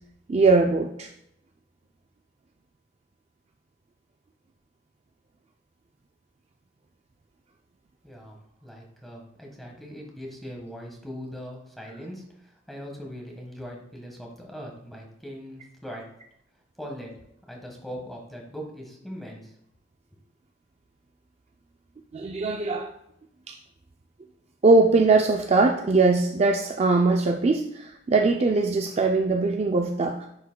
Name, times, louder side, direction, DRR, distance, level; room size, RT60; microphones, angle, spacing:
voice 1, 0.3-1.1 22.1-22.9 23.5-23.6 24.6-30.3, right 3 dB, 35° right, 3 dB, 0.4 m, -21 dB
voice 2, 8.0-16.1 16.8-17.1 17.5-19.6, equal, ahead, 0 dB, 1.4 m, -40 dB
10.0 x 5.1 x 2.2 m, 0.75 s
head